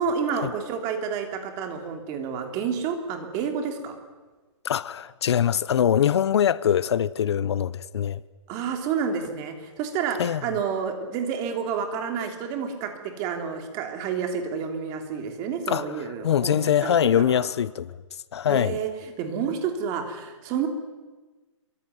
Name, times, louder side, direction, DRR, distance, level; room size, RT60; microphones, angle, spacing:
voice 1, 0.0-4.0 8.5-17.5 18.5-18.9 19.2-20.7, right 6 dB, 20° right, 3.0 m, -29 dB
voice 2, 4.6-8.2 10.2-10.4 15.7-15.8 16.2-17.9 18.3-18.8, left 9 dB, 55° left, 0.8 m, -23 dB
26.5 x 24.0 x 9.4 m
hypercardioid pair, 170°, 16 cm